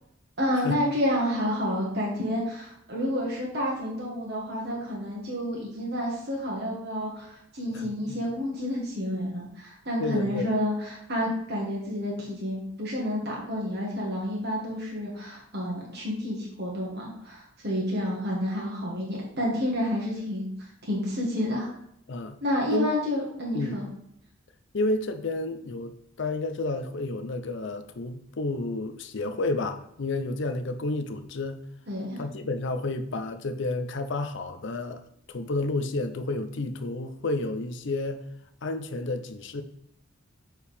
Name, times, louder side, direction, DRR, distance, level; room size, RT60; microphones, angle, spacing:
voice 1, 0.4-20.5 20.8-21.7 22.4-23.9 31.9-32.2, left 1 dB, 50° right, -3 dB, 1.6 m, -29 dB
voice 2, 7.7-8.2 10.0-10.5 22.1-22.4 22.7-22.9 23.5-23.8 24.7-25.9 26.2-31.6 32.2-35.0 35.3-38.2 38.6-39.6, left 2 dB, 60° left, 9 dB, 0.6 m, -30 dB
6.7 x 4.6 x 3.5 m, 0.74 s
head